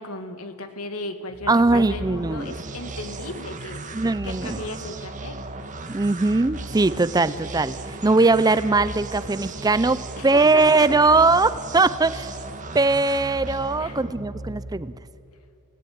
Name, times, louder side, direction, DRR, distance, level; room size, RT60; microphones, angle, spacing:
voice 1, 0.0-5.4 10.2-10.9 13.8-14.0, left 2 dB, 75° left, 8 dB, 2.0 m, -36 dB
sound 1, 1.3-15.1, right 2 dB, 35° right, 1.7 m, -36 dB
voice 2, 1.5-2.5 3.9-4.6 5.9-12.3 12.7-14.9, right 3 dB, 15° right, 15 dB, 0.5 m, -20 dB
28.0 x 17.0 x 9.4 m, 2.7 s
head